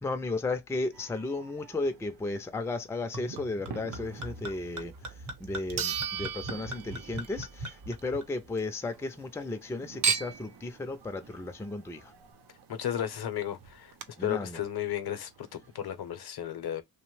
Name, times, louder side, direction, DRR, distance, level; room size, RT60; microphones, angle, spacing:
voice 1, 0.0-12.1 14.2-14.6, left 2 dB, 10° left, 0.3 m, -34 dB
sound 1, 0.9-16.1, right 5 dB, 90° right, 0.8 m, -52 dB
Chink clink / Liquid, 3.1-8.7 9.0-9.7 10.0-10.6 11.3-11.4, right 5 dB, 45° right, 0.9 m, -36 dB
sound 2, 4.9-5.0 5.8-7.5 7.9-8.0 12.6-12.7 12.9-13.0 13.6-14.0, right 8 dB, 60° right, 0.5 m, -37 dB
voice 2, 12.7-13.9 14.2-16.8, left 10 dB, 75° left, 0.6 m, -34 dB
2.9 x 2.1 x 3.1 m
wide cardioid pair, 120°, 38 cm